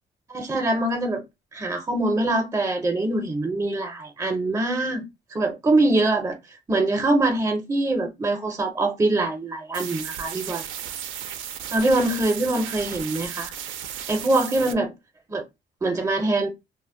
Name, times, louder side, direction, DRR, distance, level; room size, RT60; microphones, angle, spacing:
voice 1, 0.3-1.2 1.5-5.0 5.3-10.6 11.7-13.5 14.1-14.9 15.3-15.5 15.8-16.5, right 2 dB, 15° right, 0.5 m, -23 dB
sound 1, 9.7-14.7, right 9 dB, 85° right, 0.4 m, -35 dB
2.1 x 2.0 x 3.6 m
cardioid pair, 90°, 20 cm